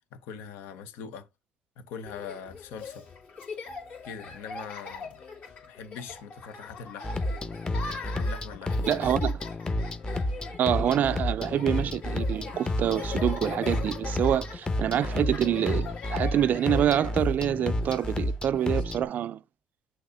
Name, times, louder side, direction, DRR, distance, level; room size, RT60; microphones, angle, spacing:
voice 1, 0.1-1.3 1.8-3.1 4.0-5.2 5.7-7.2 7.8-9.1, left 6 dB, 75° left, 0.7 m, -42 dB
Laughter, 2.1-18.8, left 4 dB, 55° left, 2.2 m, -42 dB
sound 1, 7.0-19.1, left 1 dB, 25° left, 0.9 m, -30 dB
voice 2, 8.9-9.3 10.6-19.4, right 10 dB, 55° right, 0.3 m, -26 dB
6.4 x 2.8 x 5.4 m
hypercardioid pair, 60°, 3 cm